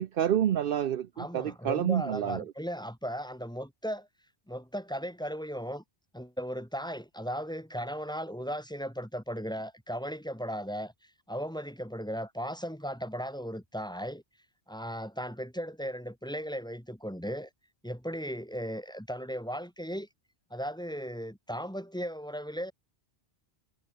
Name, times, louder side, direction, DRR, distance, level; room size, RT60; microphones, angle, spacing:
voice 1, 0.0-2.4, right 10 dB, 60° right, 0.8 m, -28 dB
voice 2, 1.2-4.1 4.5-5.8 6.1-10.9 11.3-14.2 14.7-17.5 17.8-20.1 20.5-22.7, equal, 5° left, 2.5 m, -36 dB
omnidirectional pair, 1.1 m